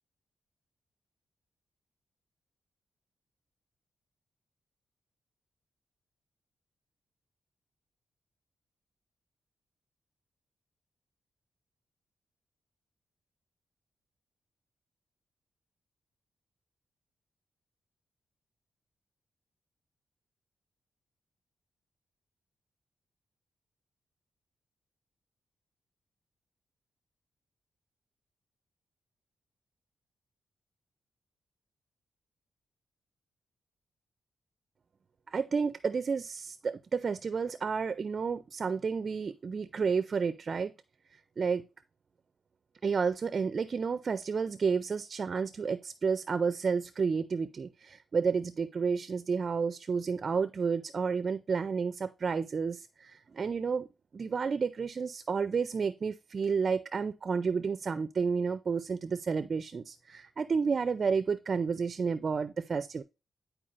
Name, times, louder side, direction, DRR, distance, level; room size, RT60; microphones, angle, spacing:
voice 1, 35.3-40.7 41.4-41.7 42.8-53.9 54.1-63.0, right 5 dB, 50° right, 0.4 m, -31 dB
10.0 x 4.5 x 2.5 m
cardioid pair, 95°, 0 cm